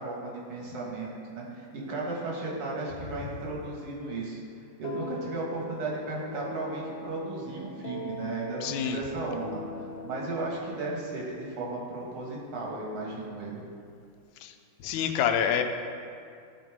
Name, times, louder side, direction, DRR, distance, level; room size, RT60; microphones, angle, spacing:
voice 1, 0.0-4.4 4.8-13.6, right 2 dB, 85° right, -3 dB, 2.3 m, -35 dB
sound 1, 4.8-12.6, left 3 dB, 90° left, 1.6 m, -42 dB
voice 2, 8.6-9.0 14.4-14.5 14.8-15.6, left 8 dB, 75° left, 6 dB, 1.2 m, -26 dB
11.0 x 4.1 x 4.7 m, 2.4 s
omnidirectional pair, 2.4 m